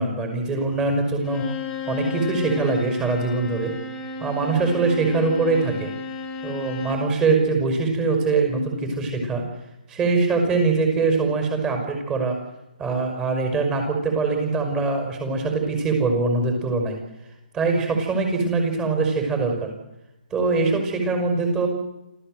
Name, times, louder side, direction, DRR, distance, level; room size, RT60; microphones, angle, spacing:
voice 1, 0.0-1.4 1.9-3.7 4.2-5.9 6.4-9.4 9.9-12.4 12.8-17.0 17.5-19.7 20.3-21.7, right 3 dB, 15° right, 4 dB, 5.7 m, -23 dB
Bowed string instrument, 1.2-7.1, left 4 dB, 10° left, 2.9 m, -33 dB
27.0 x 14.5 x 7.9 m, 0.93 s
hypercardioid pair, 155°, 5 cm